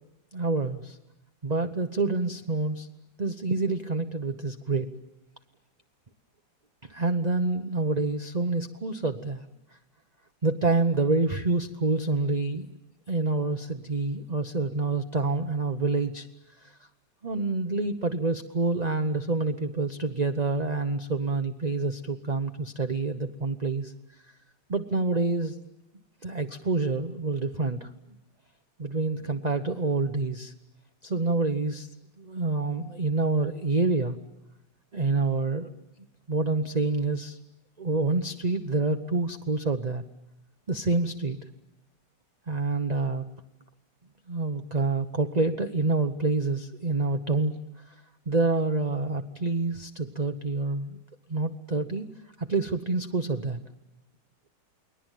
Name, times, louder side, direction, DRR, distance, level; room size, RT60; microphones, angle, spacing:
voice 1, 0.3-1.0 1.4-2.9 3.2-4.9 6.8-9.5 10.4-12.7 13.1-16.3 16.6-16.8 17.2-23.9 24.7-25.6 26.2-27.9 28.8-30.5 31.0-31.9 32.2-34.2 34.9-35.7 36.3-37.4 37.8-40.0 40.7-41.4 42.5-43.2 44.3-47.5 47.9-48.0 48.3-51.0 51.3-52.1 52.4-53.6, right 3 dB, 30° right, 6 dB, 0.9 m, -27 dB
29.5 x 21.0 x 9.2 m, 0.95 s
omnidirectional pair, 2.0 m